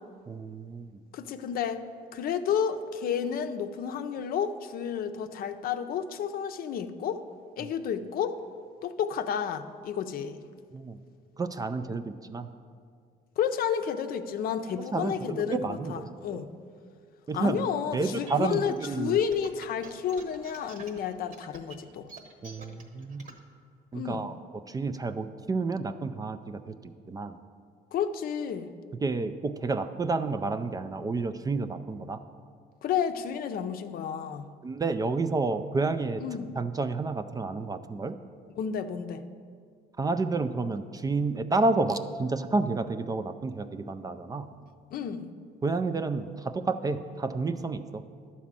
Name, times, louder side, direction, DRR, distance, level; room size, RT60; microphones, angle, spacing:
voice 1, 0.3-1.0 7.6-7.7 10.7-11.0 11.4-12.5 14.7-16.4 17.3-17.6 17.9-19.2 22.4-23.3 23.9-24.4 24.7-27.4 29.0-32.2 34.6-36.2 36.6-38.2 40.0-44.5 45.6-48.0, right 3 dB, 20° right, 10 dB, 0.4 m, -30 dB
voice 2, 1.1-1.8 2.1-7.2 7.6-8.4 8.8-10.4 13.4-16.5 17.3-22.1 23.9-24.2 27.9-28.7 32.8-34.5 36.2-36.5 38.6-39.2 44.9-45.3, left 8 dB, 60° left, 8 dB, 0.6 m, -31 dB
sound 1, 18.0-23.4, right 4 dB, 50° right, 1.1 m, -47 dB
11.0 x 4.2 x 7.4 m, 2.2 s
cardioid pair, 110°, 17 cm